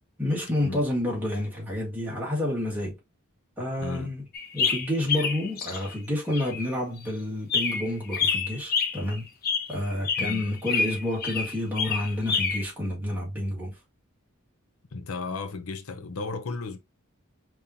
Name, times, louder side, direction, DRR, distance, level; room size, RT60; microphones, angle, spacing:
voice 1, 0.2-3.0 3.6-4.2 4.5-9.3 9.7-13.7, left 1 dB, 10° right, 2.0 m, -29 dB
sound 1, 4.3-5.9 6.3-6.7 7.5-12.6, left 5 dB, 45° left, 0.8 m, -28 dB
voice 2, 14.9-16.8, left 3 dB, 85° left, 0.7 m, -34 dB
5.3 x 3.1 x 2.8 m
head